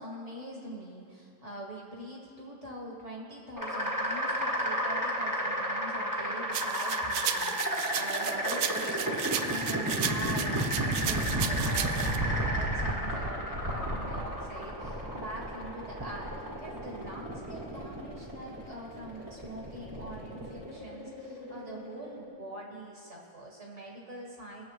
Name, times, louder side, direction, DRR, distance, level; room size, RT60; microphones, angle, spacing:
voice 1, 0.0-24.6, right 1 dB, 45° right, -2 dB, 1.9 m, -43 dB
sound 1, 3.6-22.3, equal, 15° right, 1.2 m, -32 dB
sound 2, 6.5-12.2, right 10 dB, 75° right, 1.1 m, -35 dB
20.5 x 7.3 x 3.1 m, 2.3 s
omnidirectional pair, 1.8 m